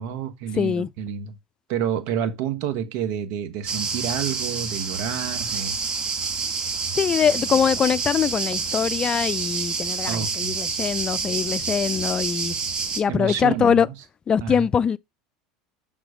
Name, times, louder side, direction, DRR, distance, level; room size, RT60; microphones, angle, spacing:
voice 1, 0.0-1.3 1.7-5.8 10.1-10.5 13.1-13.9 14.4-14.5, right 8 dB, 65° right, 1.2 m, -29 dB
voice 2, 0.5-0.9 7.0-12.6 12.9-13.9 14.3-15.0, left 7 dB, 30° left, 0.4 m, -22 dB
sound 1, 3.7-13.0, right 5 dB, 30° right, 1.5 m, -28 dB
6.3 x 3.9 x 4.9 m
hypercardioid pair, 85°, 3 cm